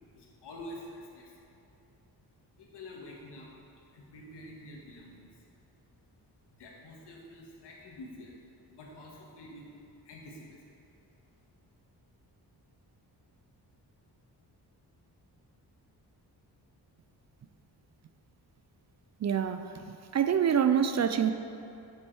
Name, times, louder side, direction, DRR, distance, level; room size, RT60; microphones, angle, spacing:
voice 1, 0.0-1.5 2.5-3.5 3.9-5.6 6.6-8.3 8.7-9.7 10.0-10.8, left 1 dB, 80° left, -2 dB, 1.7 m, -48 dB
voice 2, 19.2-21.3, right 8 dB, 40° right, 9 dB, 0.4 m, -26 dB
7.6 x 7.3 x 4.7 m, 2.6 s
cardioid pair, 90°, 41 cm